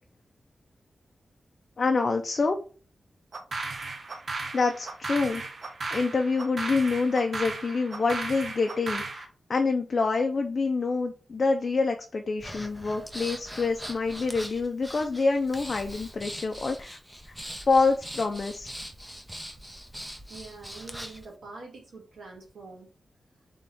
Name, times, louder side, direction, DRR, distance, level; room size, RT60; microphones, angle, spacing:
voice 1, 1.8-2.6 4.5-5.4 5.9-17.0 17.3-17.4 17.7-18.7, left 4 dB, 45° left, 4 dB, 0.5 m, -26 dB
sound 1, 3.3-9.2, right 3 dB, 55° right, 0.7 m, -35 dB
Breathing, 12.4-21.3, equal, 5° right, 0.6 m, -41 dB
voice 2, 20.3-22.9, right 3 dB, 90° right, -1 dB, 1.7 m, -45 dB
4.2 x 3.5 x 3.4 m, 0.38 s
wide cardioid pair, 135°, 0 cm